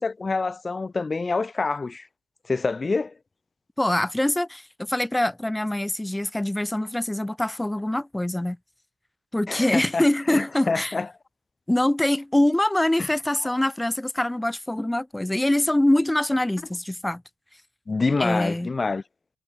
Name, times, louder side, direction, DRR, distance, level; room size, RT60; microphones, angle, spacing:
voice 1, 0.0-2.1 2.5-3.1 9.5-11.1 13.0-13.1 17.9-19.0, left 3 dB, 25° left, 1.2 m, -26 dB
voice 2, 3.8-8.6 9.3-10.9 11.7-17.2 18.2-18.7, left 1 dB, 10° left, 0.8 m, -24 dB
cardioid pair, 90°, 0 cm